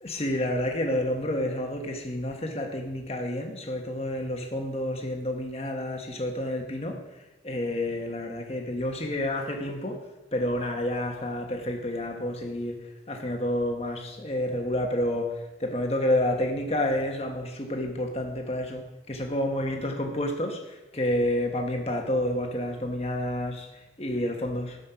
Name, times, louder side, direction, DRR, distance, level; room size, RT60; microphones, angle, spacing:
voice 1, 0.0-24.8, left 1 dB, 35° left, 2 dB, 1.3 m, -29 dB
12.5 x 5.5 x 5.7 m, 1.0 s
head